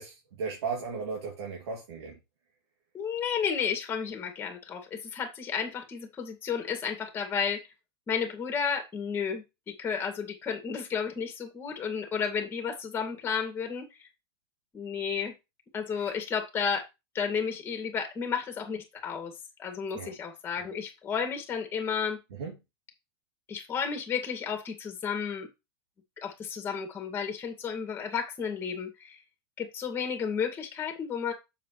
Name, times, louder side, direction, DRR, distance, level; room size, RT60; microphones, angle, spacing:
voice 1, 0.0-2.1 15.9-16.1 19.9-20.1 22.4-22.5, right 5 dB, 90° right, 2.6 m, -36 dB
voice 2, 2.9-7.6 8.1-14.1 14.7-15.3 15.7-16.9 17.1-19.3 19.6-22.2 23.5-25.5 26.2-29.2 29.6-31.3, left 6 dB, 15° left, 2.2 m, -32 dB
7.6 x 7.2 x 3.2 m
supercardioid pair, 155°, 13 cm